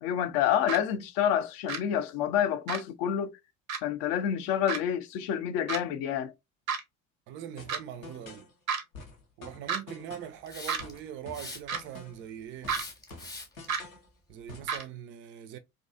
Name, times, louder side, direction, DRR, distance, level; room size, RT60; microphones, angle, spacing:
voice 1, 0.0-3.3 3.8-6.3, left 9 dB, 50° left, 0.5 m, -28 dB
sound 1, 0.7-0.8 1.7-1.8 2.7-2.8 3.7-3.8 4.7-4.8 5.7-5.8 6.7-6.8 7.7-7.8 8.7-8.8 9.7-9.8 10.7-10.8 11.7-11.8 12.7-12.8 13.7-13.8 14.7-14.8, right 6 dB, 85° right, 0.5 m, -30 dB
voice 2, 7.3-8.5 9.4-12.8 14.3-15.6, right 10 dB, 30° right, 0.4 m, -42 dB
sound 2, 7.6-8.5 8.9-10.4 10.8-12.3 12.6-14.1 14.5-14.8, left 2 dB, 85° left, 0.7 m, -47 dB
Hiss, 10.5-11.0 11.3-12.0 12.7-13.6, left 2 dB, 10° left, 0.7 m, -42 dB
2.5 x 2.3 x 2.4 m
figure-of-eight pair, 65°, 40 cm